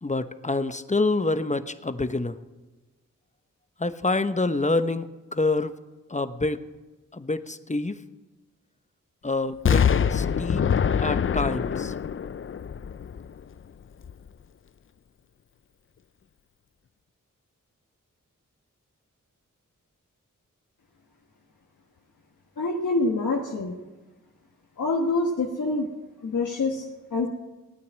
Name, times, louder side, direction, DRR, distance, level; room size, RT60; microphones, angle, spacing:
voice 1, 0.0-2.4 3.8-5.8 6.1-6.6 7.1-8.0 9.2-10.7 11.0-12.0, left 2 dB, 20° left, 11 dB, 1.0 m, -27 dB
Explosion, 9.7-13.6 14.0-14.1, left 7 dB, 40° left, 0.5 m, -24 dB
voice 2, 22.6-23.8 24.8-25.9 26.2-27.3, left 3 dB, 70° left, -1 dB, 1.5 m, -26 dB
17.0 x 9.2 x 7.4 m, 1.2 s
cardioid pair, 45°, 32 cm